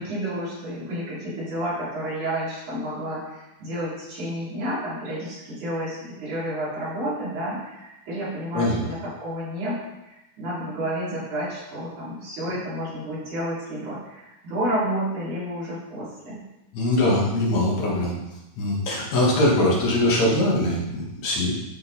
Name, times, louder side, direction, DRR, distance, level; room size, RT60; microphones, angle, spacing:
voice 1, 0.0-16.4, right 1 dB, 80° right, -9 dB, 4.7 m, -30 dB
voice 2, 16.7-18.1 18.6-21.5, left 1 dB, 65° left, -4 dB, 2.8 m, -22 dB
11.5 x 3.9 x 4.1 m, 0.94 s
omnidirectional pair, 3.5 m